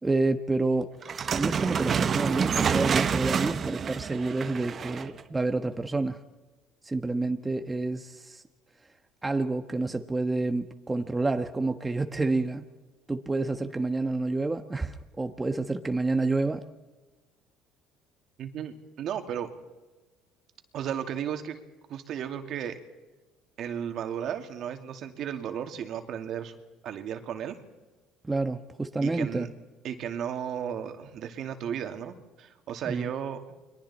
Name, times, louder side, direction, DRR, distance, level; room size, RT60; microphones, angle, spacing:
voice 1, 0.0-0.9 1.4-6.2 6.8-8.4 9.2-12.6 13.1-16.7 28.2-29.5 32.9-33.1, right 3 dB, 15° right, 7 dB, 1.2 m, -29 dB
sound 1, 1.0-5.2, right 6 dB, 40° right, 1.1 m, -27 dB
voice 2, 18.4-19.5 20.7-21.6 21.9-22.8 23.6-26.6 26.8-27.6 29.0-29.5 29.8-33.4, right 9 dB, 60° right, 7 dB, 2.4 m, -34 dB
29.5 x 22.5 x 4.3 m, 1.2 s
supercardioid pair, 100°, 0 cm